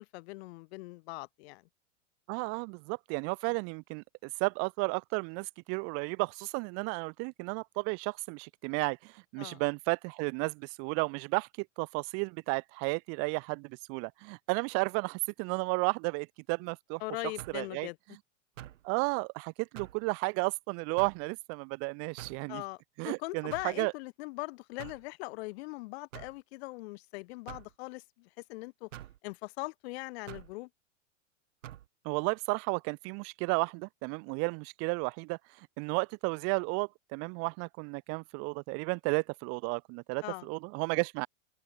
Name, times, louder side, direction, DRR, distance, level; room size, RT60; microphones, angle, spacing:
voice 1, 0.0-1.6 9.4-9.6 17.0-18.0 22.5-28.9 29.2-30.7 40.2-40.5, left 23 dB, 55° left, 2.0 m, -41 dB
voice 2, 2.3-17.0 17.5-17.9 18.8-22.6 23.0-23.9 32.0-41.3, right 35 dB, 40° right, 0.7 m, -33 dB
sound 1, 17.4-17.7 18.6-18.9 19.8-20.0 21.0-21.3 22.2-22.5 23.5-23.8 24.8-25.1 26.1-26.4 27.5-27.7 28.9-29.2 30.3-30.5 31.6-31.9, right 12 dB, 75° right, 4.7 m, -46 dB
open air
hypercardioid pair, 130°, 38 cm